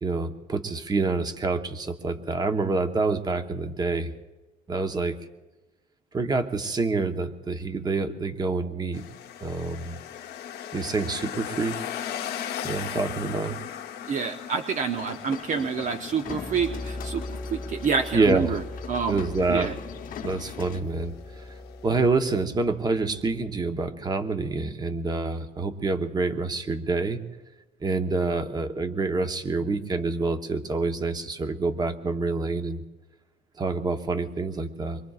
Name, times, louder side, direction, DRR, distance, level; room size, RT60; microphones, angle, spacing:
voice 1, 0.0-4.1 4.7-5.2 6.1-9.1 9.4-10.0 10.7-11.8 12.6-13.6 18.1-18.6 19.1-19.7 20.2-21.5 21.8-27.2 27.8-32.8 33.6-35.0, right 3 dB, 25° right, 8 dB, 1.0 m, -27 dB
sound 1, 8.9-22.1, left 9 dB, 80° left, 1.0 m, -39 dB
voice 2, 14.1-17.2 17.5-18.6 18.9-19.2 19.5-19.7, right 6 dB, 45° right, 6 dB, 0.7 m, -27 dB
sound 2, 14.9-20.8, left 9 dB, 55° left, 0.8 m, -41 dB
sound 3, 16.2-23.8, left 2 dB, 5° left, 1.5 m, -40 dB
25.5 x 22.5 x 2.4 m, 1.1 s
cardioid pair, 110°, 17 cm